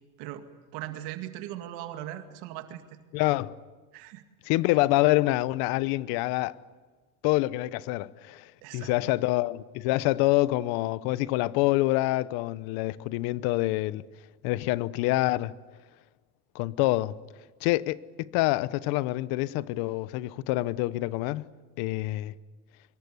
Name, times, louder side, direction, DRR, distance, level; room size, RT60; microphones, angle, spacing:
voice 1, 0.7-2.8 3.9-4.2 8.6-8.9, right 13 dB, 65° right, 2.2 m, -39 dB
voice 2, 3.1-3.6 4.4-6.6 7.2-14.0 14.4-15.5 16.5-17.2 17.6-21.4 21.8-22.3, left 18 dB, 60° left, 0.9 m, -26 dB
25.0 x 23.0 x 8.3 m
supercardioid pair, 140°, 42 cm